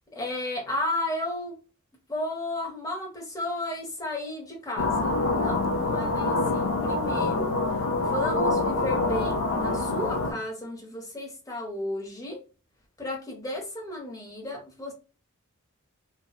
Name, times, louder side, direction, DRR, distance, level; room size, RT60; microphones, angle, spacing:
voice 1, 0.1-1.5 2.1-12.4 13.0-14.9, left 1 dB, 15° left, 0 dB, 0.7 m, -33 dB
sound 1, 4.8-10.3, left 2 dB, 60° left, 0.4 m, -26 dB
2.6 x 2.1 x 2.3 m, 0.33 s
head